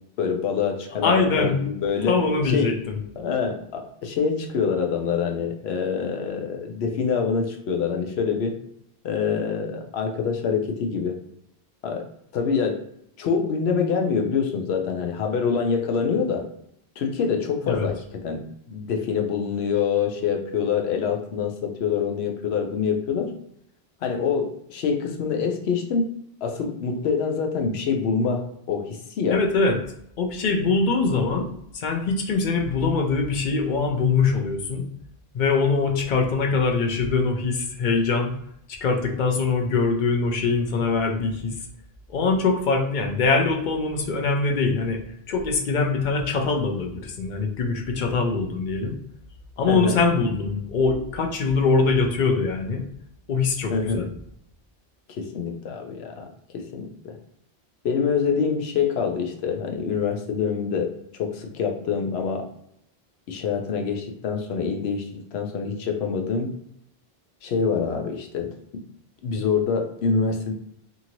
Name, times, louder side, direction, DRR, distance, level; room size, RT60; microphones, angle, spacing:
voice 1, 0.2-2.2 2.5-2.8 3.2-8.5 9.0-11.2 11.8-12.1 12.3-12.8 13.2-16.5 17.0-23.3 24.0-26.1 26.4-29.4 49.7-50.0 53.7-54.1 55.1-57.2 57.8-62.5 63.3-66.5 67.4-68.5 69.2-70.5, left 6 dB, 85° left, 4 dB, 0.8 m, -25 dB
voice 2, 1.0-1.6 2.1-3.0 17.6-17.9 29.3-29.8 30.2-34.8 35.3-38.3 38.7-41.5 42.1-45.0 45.3-49.0 49.6-52.8 53.3-54.1, left 4 dB, 55° left, 3 dB, 0.6 m, -23 dB
2.7 x 2.5 x 2.9 m, 0.73 s
omnidirectional pair, 1.1 m